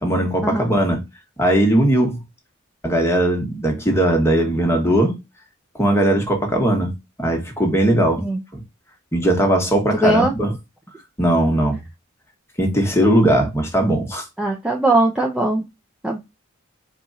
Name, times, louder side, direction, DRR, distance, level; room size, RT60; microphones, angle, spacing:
voice 1, 0.0-1.0 1.4-2.2 2.8-5.2 5.8-8.2 8.5-8.6 9.1-10.5 11.2-11.8 12.6-14.2, right 1 dB, 15° left, 1.3 m, -19 dB
voice 2, 10.0-10.3 14.4-15.6 16.0-16.2, right 2 dB, 5° right, 0.6 m, -19 dB
4.5 x 2.4 x 4.1 m
head